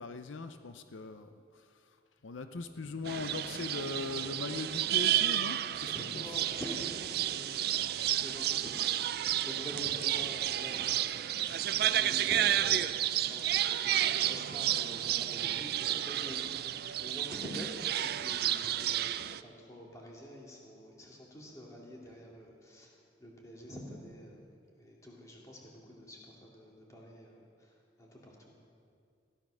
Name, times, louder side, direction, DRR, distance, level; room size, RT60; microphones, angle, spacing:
voice 1, 0.0-2.0 2.2-6.3, left 3 dB, 80° left, 8 dB, 0.6 m, -40 dB
voice 2, 2.7-3.2 5.8-8.8 9.2-22.9 23.2-24.4 24.8-28.5, equal, 15° left, -3 dB, 2.3 m, -47 dB
sound 1, 3.1-19.4, right 12 dB, 55° right, 0.4 m, -31 dB
15.5 x 11.0 x 6.2 m, 2.3 s
head